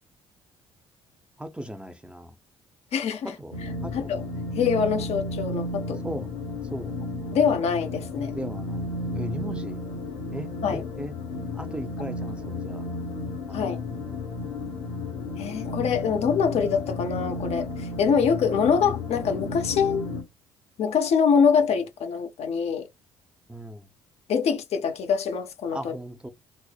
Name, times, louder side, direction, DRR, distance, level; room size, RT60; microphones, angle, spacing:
voice 1, 1.4-2.3 3.2-3.5 3.8-4.1 6.0-6.3 6.7-6.9 8.3-9.8 10.3-11.1 11.5-12.8 13.5-13.7 23.5-23.9 25.7-26.3, right 1 dB, 5° right, 0.6 m, -37 dB
voice 2, 2.9-3.3 3.9-4.2 4.6-6.0 7.3-8.4 10.6-10.8 13.5-13.8 15.4-20.1 20.8-22.9 24.3-26.0, left 6 dB, 50° left, 0.6 m, -24 dB
sound 1, 3.5-20.2, left 2 dB, 70° left, 1.0 m, -33 dB
4.1 x 2.0 x 2.3 m
figure-of-eight pair, 45°, 14 cm